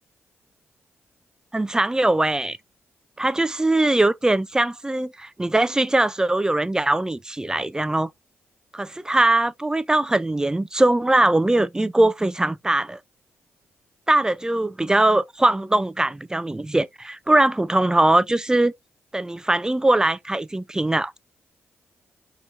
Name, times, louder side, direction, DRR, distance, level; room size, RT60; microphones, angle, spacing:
voice 1, 1.5-2.6 3.2-8.1 8.7-13.0 14.1-18.7 19.1-21.1, right 2 dB, 15° right, 0.3 m, -21 dB
4.1 x 3.0 x 2.4 m
supercardioid pair, 55°, 5 cm